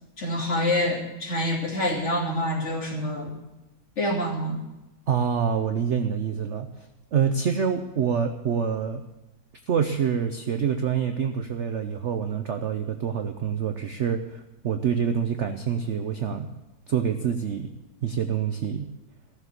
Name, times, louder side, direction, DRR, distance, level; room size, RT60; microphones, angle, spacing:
voice 1, 0.2-3.3 4.0-4.6, left 1 dB, 35° left, -2 dB, 3.0 m, -26 dB
voice 2, 5.1-9.0 9.7-16.5 16.9-17.8 18.0-18.9, right 7 dB, 60° right, 7 dB, 0.7 m, -26 dB
15.0 x 7.2 x 8.0 m, 1.0 s
omnidirectional pair, 2.0 m